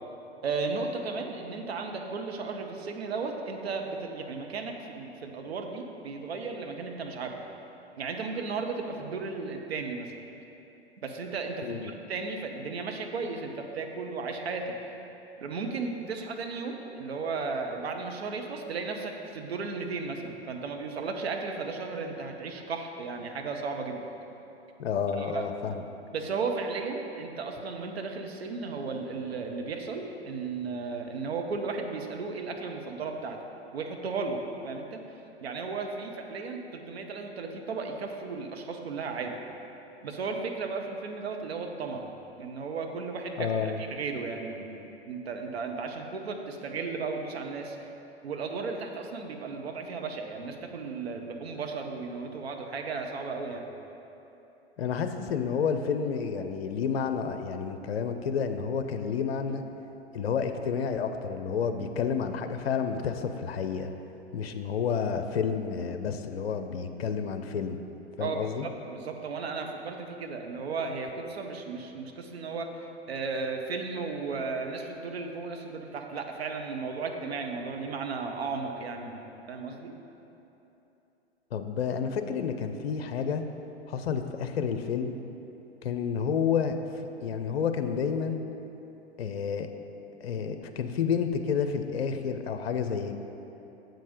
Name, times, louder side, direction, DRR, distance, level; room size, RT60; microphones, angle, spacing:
voice 1, 0.4-7.4 8.0-10.1 11.0-14.7 15.4-24.1 25.2-25.5 26.1-33.4 33.7-35.0 35.4-39.4 40.0-42.1 42.4-47.8 48.2-53.6 68.2-72.7 73.1-79.9, right 4 dB, 65° right, 3 dB, 0.9 m, -35 dB
voice 2, 11.6-11.9 24.8-25.8 43.4-43.8 54.8-59.6 60.1-63.9 64.3-67.8 68.2-68.7 81.5-83.4 83.9-85.1 85.8-86.8 87.2-88.4 89.2-89.7 90.2-93.1, left 6 dB, 65° left, 7 dB, 0.5 m, -30 dB
7.5 x 5.2 x 5.1 m, 3.0 s
figure-of-eight pair, 100°, 33 cm